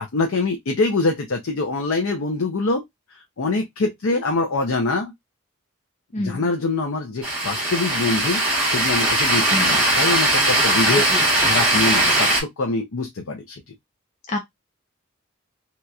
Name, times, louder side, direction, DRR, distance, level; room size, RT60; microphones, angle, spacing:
voice 1, 0.0-2.8 3.1-5.1 6.2-11.1 11.4-13.7, left 3 dB, 80° left, 0.6 m, -24 dB
voice 2, 6.1-6.4 9.5-9.7 11.1-11.3 14.3-14.4, left 2 dB, 35° left, 0.6 m, -27 dB
sound 1, 7.2-12.4, right 1 dB, 5° right, 1.0 m, -19 dB
3.0 x 2.8 x 2.3 m
head